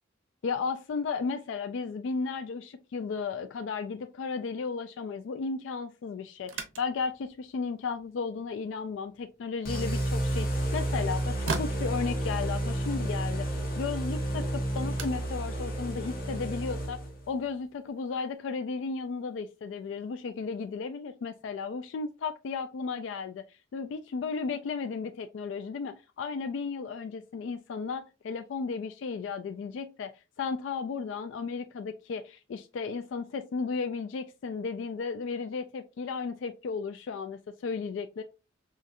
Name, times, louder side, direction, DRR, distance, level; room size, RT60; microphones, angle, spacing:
voice 1, 0.4-17.0 17.3-23.4 23.7-30.1 30.4-38.2, left 5 dB, 70° left, 0.3 m, -34 dB
sound 1, 6.4-16.9, right 3 dB, 80° right, 0.7 m, -44 dB
sound 2, 9.6-17.3, right 1 dB, 50° left, 1.1 m, -31 dB
4.0 x 2.5 x 2.4 m
head